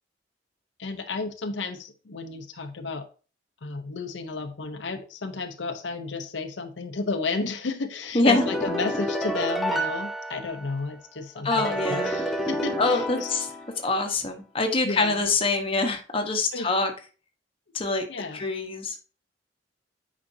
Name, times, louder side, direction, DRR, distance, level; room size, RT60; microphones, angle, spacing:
voice 1, 0.8-3.1 3.6-13.3 14.8-15.2 16.5-16.7 18.1-18.5, left 3 dB, 80° left, 7 dB, 0.7 m, -32 dB
voice 2, 8.1-8.5 11.4-12.2 12.8-13.5 13.8-16.9 17.7-18.0 18.3-19.0, left 3 dB, 30° left, 3 dB, 1.1 m, -25 dB
sound 1, 8.3-10.9 11.5-14.0, equal, ahead, 0.8 m, -29 dB
8.7 x 5.0 x 2.7 m, 0.36 s
head